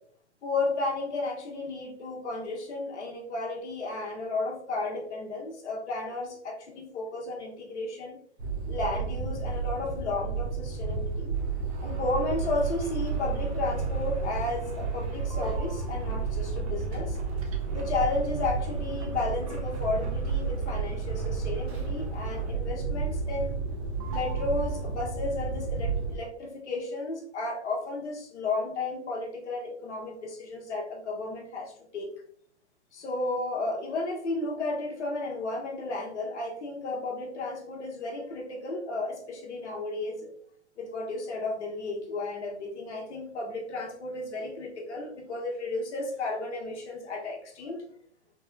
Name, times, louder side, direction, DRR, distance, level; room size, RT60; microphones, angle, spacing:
voice 1, 0.4-8.2 8.7-11.3 11.8-17.2 17.7-23.6 24.1-32.1 32.9-40.3 40.8-47.9, left 3 dB, 75° left, 0 dB, 1.0 m, -33 dB
sound 1, 8.4-26.2, right 5 dB, 65° right, 0.9 m, -31 dB
sound 2, 11.4-22.8 23.2-23.7 24.0-25.3, right 1 dB, 30° right, 0.4 m, -46 dB
3.5 x 2.1 x 2.4 m, 0.64 s
hypercardioid pair, 140°, 34 cm